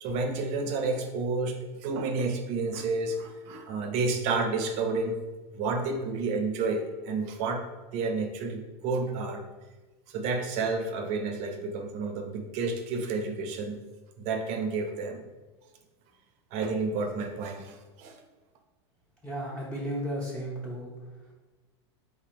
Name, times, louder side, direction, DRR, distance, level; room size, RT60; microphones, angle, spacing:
voice 1, 0.0-5.2 5.5-7.6 7.9-9.4 10.1-13.8 14.2-15.2 16.5-18.2, right 3 dB, 50° right, 5 dB, 0.7 m, -30 dB
voice 2, 19.2-20.9 21.2-21.3, equal, 10° left, -6 dB, 0.8 m, -34 dB
4.2 x 2.8 x 4.2 m, 1.2 s
supercardioid pair, 135°, 15 cm